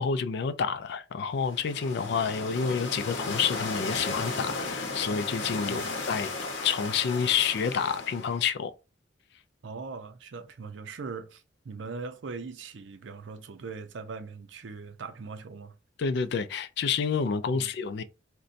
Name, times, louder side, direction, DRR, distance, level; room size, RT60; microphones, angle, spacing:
voice 1, 0.0-6.3 6.6-8.7 16.0-18.0, left 6 dB, 60° left, 0.3 m, -29 dB
sound 1, 1.4-8.5, left 3 dB, 90° left, 0.8 m, -35 dB
voice 2, 9.6-15.7 17.5-17.7, right 4 dB, 70° right, 0.5 m, -40 dB
3.9 x 2.2 x 2.5 m
head